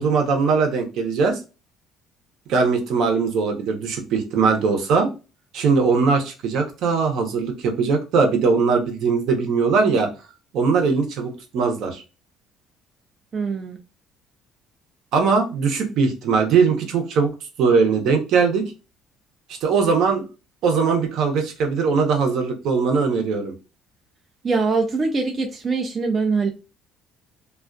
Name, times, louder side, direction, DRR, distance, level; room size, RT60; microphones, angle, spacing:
voice 1, 0.0-1.4 2.5-5.1 5.5-10.1 10.5-12.0 15.1-17.3 17.6-18.6 19.5-20.2 20.6-23.5, right 5 dB, 65° right, 4 dB, 0.7 m, -20 dB
voice 2, 13.3-13.8 24.4-26.5, right 4 dB, 30° right, 2 dB, 0.4 m, -23 dB
2.3 x 2.3 x 2.4 m, 0.30 s
cardioid pair, 130°, 0 cm